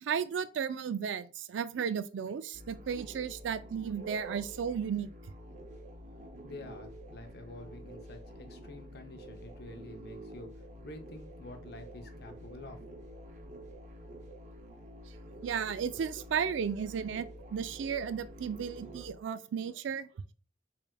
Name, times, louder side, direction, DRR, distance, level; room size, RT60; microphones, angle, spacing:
voice 1, 0.0-5.1 15.4-20.1, right 7 dB, 85° right, 0.4 m, -34 dB
sound 1, 2.5-19.1, right 1 dB, 40° right, 0.6 m, -48 dB
voice 2, 6.4-12.8, left 2 dB, 60° left, 0.6 m, -48 dB
4.5 x 3.3 x 2.2 m
head